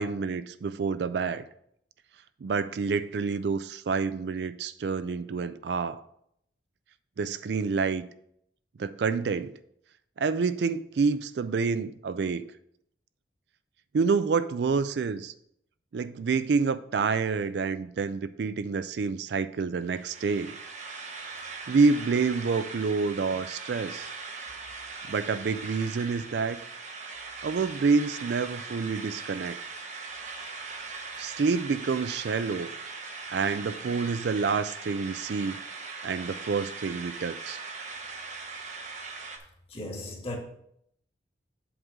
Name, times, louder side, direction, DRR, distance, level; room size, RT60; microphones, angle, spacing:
voice 1, 0.0-1.4 2.4-6.0 7.2-8.0 8.8-9.5 10.2-12.4 13.9-15.3 15.9-20.6 21.7-24.1 25.1-26.6 27.4-29.6 31.2-32.7 33.3-35.6 36.0-37.6, right 5 dB, 65° right, 0.4 m, -28 dB
sound 1, 19.8-39.4, right 4 dB, 40° right, 0.9 m, -40 dB
voice 2, 39.7-40.4, left 1 dB, 30° left, 1.6 m, -36 dB
7.9 x 3.8 x 6.2 m
head